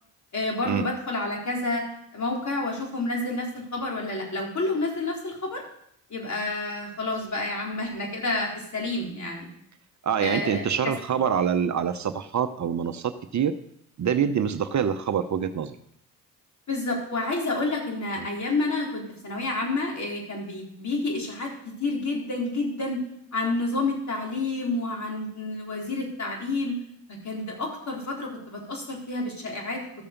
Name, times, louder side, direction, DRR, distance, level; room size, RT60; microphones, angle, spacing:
voice 1, 0.3-1.9 2.1-5.6 6.1-9.5 10.2-11.0 16.7-23.0 23.3-26.7 27.1-29.8, left 2 dB, 45° left, -1 dB, 3.9 m, -29 dB
voice 2, 10.0-13.5 14.0-15.8 18.2-18.3, right 8 dB, 45° right, 9 dB, 0.8 m, -25 dB
13.0 x 6.8 x 5.2 m, 0.71 s
supercardioid pair, 60°, 39 cm